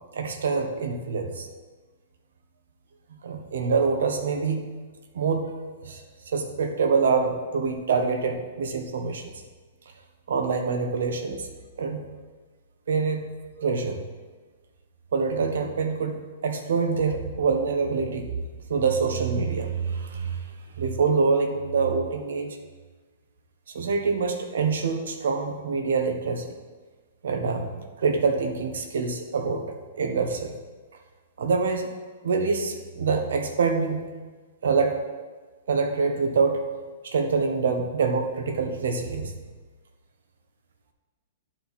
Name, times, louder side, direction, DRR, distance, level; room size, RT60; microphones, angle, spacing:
voice 1, 0.1-1.5 3.2-4.6 5.1-5.5 5.8-9.3 10.3-11.5 11.8-12.0 12.9-13.3 13.6-14.0 15.1-16.2 16.4-18.3 18.7-20.5 20.8-22.6 23.7-26.5 27.2-29.6 29.9-30.5 31.4-31.9 32.2-34.0 34.6-35.0 35.7-36.6 37.0-39.3, right 5 dB, 85° right, 5 dB, 1.1 m, -25 dB
11.0 x 4.5 x 4.2 m, 1.3 s
hypercardioid pair, 170°, 0 cm